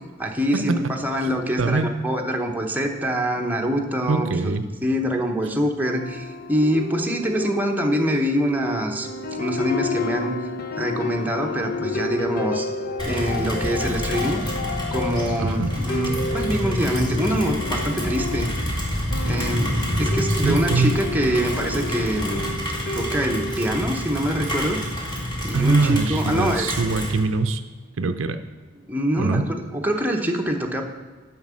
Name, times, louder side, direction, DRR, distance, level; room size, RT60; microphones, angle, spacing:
voice 1, 0.2-4.5 4.8-10.4 10.8-12.7 13.0-14.4 14.9-18.5 19.2-19.7 20.0-22.5 22.9-24.8 25.4-26.7 28.9-30.8, equal, 10° right, 1 dB, 0.9 m, -25 dB
voice 2, 1.6-1.9 4.1-4.6 15.4-15.7 20.3-21.0 25.5-27.6 28.0-28.4 29.2-29.4, right 3 dB, 80° right, 9 dB, 0.6 m, -23 dB
sound 1, 5.8-23.9, left 2 dB, 50° left, 0.6 m, -31 dB
Rain, 13.0-27.2, equal, 25° left, 2.2 m, -27 dB
7.3 x 5.9 x 7.4 m, 1.3 s
head